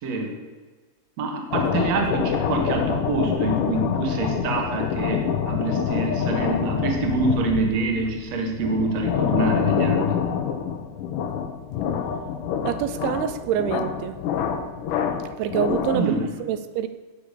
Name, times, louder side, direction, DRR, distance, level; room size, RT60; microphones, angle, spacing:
voice 1, 1.2-10.2 15.9-16.3, right 3 dB, 45° right, 2 dB, 2.5 m, -26 dB
sound 1, 1.5-16.2, left 7 dB, 75° left, 1.9 m, -26 dB
voice 2, 12.6-14.2 15.4-16.1 16.4-16.9, right 10 dB, 85° right, 11 dB, 3.0 m, -26 dB
17.0 x 6.8 x 6.8 m, 1.4 s
omnidirectional pair, 5.4 m